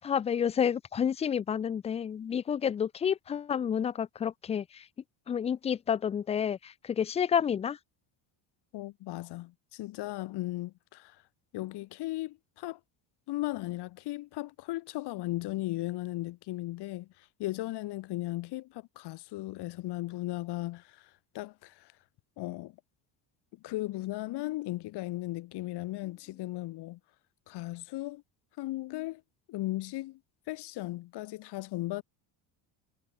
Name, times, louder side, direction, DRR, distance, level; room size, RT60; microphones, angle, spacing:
voice 1, 0.0-4.9 5.3-7.8, left 8 dB, 15° left, 0.3 m, -30 dB
voice 2, 8.7-11.2 11.5-12.8 13.3-21.9 22.4-22.8 23.6-27.0 27.5-28.2 28.6-29.2 29.5-30.2 30.5-32.0, left 17 dB, 50° left, 6.1 m, -36 dB
cardioid pair, 170°, 49 cm